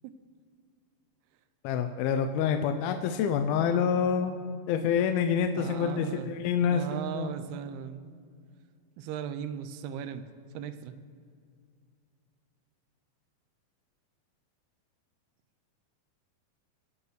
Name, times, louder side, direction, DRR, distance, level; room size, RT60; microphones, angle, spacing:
voice 1, 1.6-7.3, left 7 dB, 80° left, 7 dB, 2.4 m, -27 dB
voice 2, 5.5-6.3 6.7-8.1 9.0-10.2 10.5-11.0, right 8 dB, 90° right, 11 dB, 2.6 m, -37 dB
24.5 x 8.8 x 3.2 m, 2.2 s
omnidirectional pair, 4.5 m